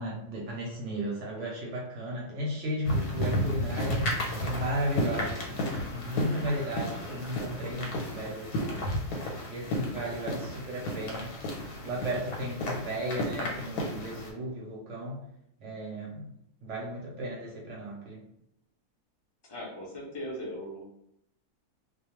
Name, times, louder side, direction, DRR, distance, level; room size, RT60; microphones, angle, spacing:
voice 1, 0.0-4.0 4.4-8.9 9.5-11.4 11.8-15.2 15.6-16.2 16.6-18.2, equal, 60° right, -3 dB, 0.8 m, -35 dB
sound 1, 2.8-14.3, equal, 85° left, 1.2 m, -33 dB
voice 2, 19.5-21.0, equal, 30° left, -4 dB, 0.4 m, -39 dB
2.4 x 2.2 x 2.9 m, 0.76 s
omnidirectional pair, 1.6 m